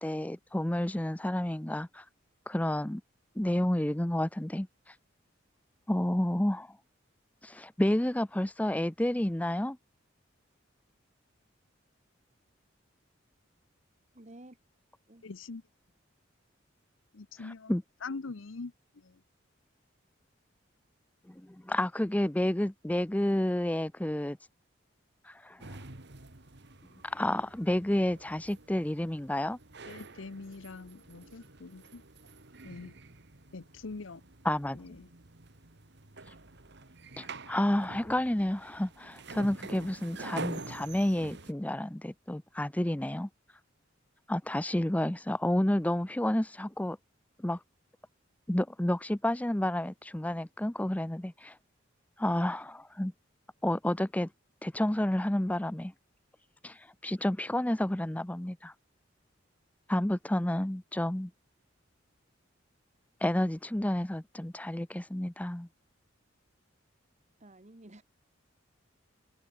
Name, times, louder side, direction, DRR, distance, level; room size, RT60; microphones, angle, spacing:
voice 1, 0.0-2.1 2.5-3.0 3.4-5.0 5.9-6.7 7.4-9.8 17.4-17.8 21.3-24.4 25.2-25.8 27.0-29.6 34.4-34.8 36.3-36.4 37.2-43.3 44.3-47.0 47.4-47.6 48.5-51.6 52.2-53.1 53.6-54.3 54.6-55.9 56.6-58.7 59.9-61.3 63.2-65.7, left 1 dB, 10° left, 0.5 m, -30 dB
voice 2, 14.1-14.6 15.1-15.2 67.4-68.0, right 1 dB, 35° right, 1.6 m, -51 dB
voice 3, 15.2-15.6 17.1-19.2 29.9-32.0 32.6-33.0 33.5-34.2 34.7-35.1, left 3 dB, 80° left, 0.8 m, -43 dB
sound 1, 25.6-41.5, right 3 dB, 60° right, 2.2 m, -47 dB
head